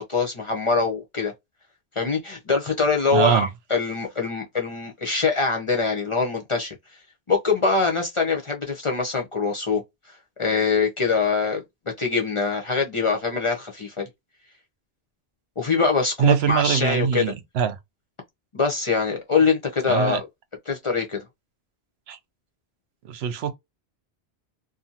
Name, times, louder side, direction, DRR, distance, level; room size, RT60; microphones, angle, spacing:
voice 1, 0.0-1.3 2.0-6.7 7.3-9.8 10.1-11.6 12.0-14.1 15.6-17.3 18.5-20.2 20.7-21.2, left 4 dB, 40° left, 0.5 m, -23 dB
voice 2, 3.1-3.5 16.2-17.8 19.9-20.2 22.1-22.2 23.0-23.5, right 9 dB, 75° right, 0.8 m, -22 dB
2.6 x 2.4 x 2.6 m
omnidirectional pair, 1.1 m